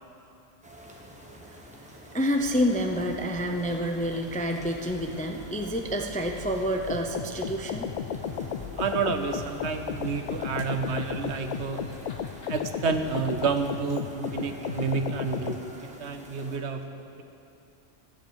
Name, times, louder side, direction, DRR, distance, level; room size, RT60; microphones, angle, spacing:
sound 1, 0.6-16.6, equal, 5° right, 1.4 m, -47 dB
voice 1, 2.1-7.9, equal, 10° left, 3 dB, 0.4 m, -28 dB
sound 2, 2.3-13.7, left 4 dB, 55° left, 1.5 m, -47 dB
sound 3, 6.9-15.6, left 8 dB, 70° left, 0.4 m, -34 dB
voice 2, 8.8-12.1 12.5-17.2, right 4 dB, 65° right, 7 dB, 1.1 m, -30 dB
13.5 x 8.1 x 8.0 m, 2.8 s
omnidirectional pair, 1.3 m